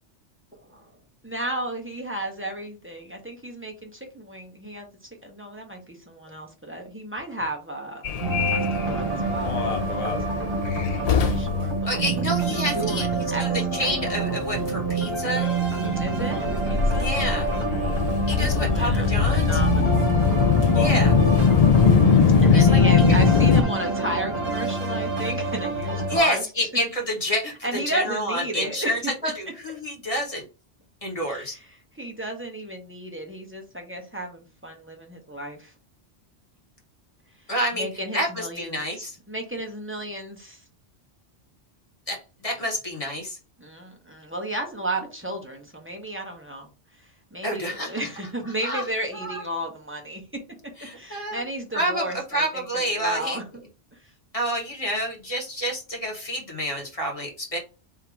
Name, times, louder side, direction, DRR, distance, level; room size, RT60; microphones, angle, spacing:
voice 1, 0.6-0.9 1.2-8.0 8.5-9.6 10.1-12.0 12.5-13.9 16.0-17.1 18.4-20.1 20.5-21.2 22.4-26.4 27.6-29.0 29.2-29.3 31.3-35.7 37.4-38.8 39.3-40.6 43.6-50.2 50.9-53.4 53.9-54.0, right 1 dB, 10° right, 1 dB, 0.9 m, -34 dB
Subway metro underground, 8.0-23.6, left 6 dB, 65° left, 0.3 m, -22 dB
sound 1, 8.2-26.2, right 4 dB, 60° right, 1.4 m, -27 dB
voice 2, 11.9-13.1 13.4-15.5 16.9-17.5 18.3-19.5 20.7-21.2 22.5-23.1 26.1-30.4 31.0-31.6 37.5-37.9 38.1-39.1 42.1-43.4 47.4-48.0 48.6-48.8 49.1-49.4 50.8-51.4 51.7-52.0 52.3-53.4 54.3-57.6, equal, 30° left, 0 dB, 1.4 m, -28 dB
3.6 x 2.7 x 4.6 m, 0.33 s
omnidirectional pair, 1.2 m